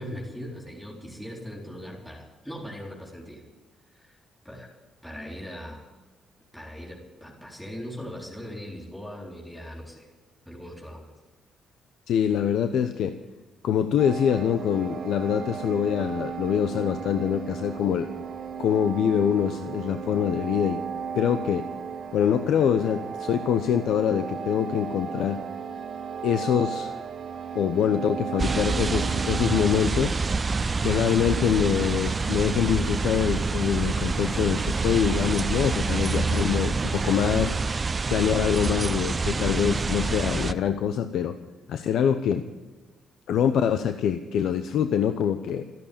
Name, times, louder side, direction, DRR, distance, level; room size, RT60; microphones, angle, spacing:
voice 1, 0.0-3.4 3.9-4.2 4.4-4.7 5.0-5.9 6.5-10.1 10.5-11.1, equal, 5° left, -2 dB, 4.2 m, -39 dB
voice 2, 12.1-13.2 13.6-18.1 18.6-20.8 21.1-21.7 22.1-25.4 26.2-26.9 27.5-30.1 30.8-37.5 38.1-41.3 41.7-42.4 43.3-45.6, left 8 dB, 75° left, 8 dB, 0.8 m, -24 dB
sound 1, 14.0-29.9, right 7 dB, 55° right, 1.1 m, -35 dB
sound 2, 28.4-40.5, right 4 dB, 30° right, 0.6 m, -27 dB
14.0 x 11.0 x 8.7 m, 1.2 s
cardioid pair, 90°, 0 cm